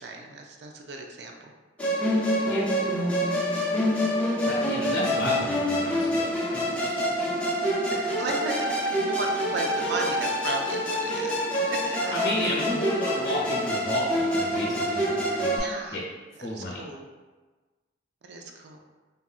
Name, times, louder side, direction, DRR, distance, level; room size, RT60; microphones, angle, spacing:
voice 1, 0.0-1.5 3.5-3.8 8.2-11.3 11.9-12.0 15.4-16.0 16.5-17.1 18.2-18.8, right 2 dB, 60° right, 2 dB, 0.4 m, -35 dB
Musical instrument, 1.8-15.6, equal, 5° left, 0.4 m, -26 dB
voice 2, 4.4-6.2 6.8-6.9 12.1-15.5 15.9-16.0 16.4-16.8, left 1 dB, 60° left, -5 dB, 0.7 m, -31 dB
3.7 x 2.2 x 2.3 m, 1.3 s
head